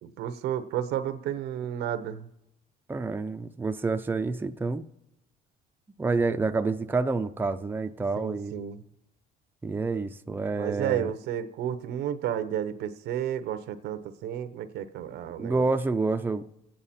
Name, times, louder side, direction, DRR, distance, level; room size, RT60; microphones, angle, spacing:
voice 1, 0.0-2.3 8.2-8.8 10.6-15.6, right 10 dB, 80° right, 12 dB, 0.8 m, -32 dB
voice 2, 2.9-4.8 6.0-8.6 9.6-11.1 15.4-16.5, right 3 dB, 10° right, 6 dB, 0.5 m, -28 dB
25.5 x 8.9 x 4.3 m, 0.89 s
cardioid pair, 110°, 17 cm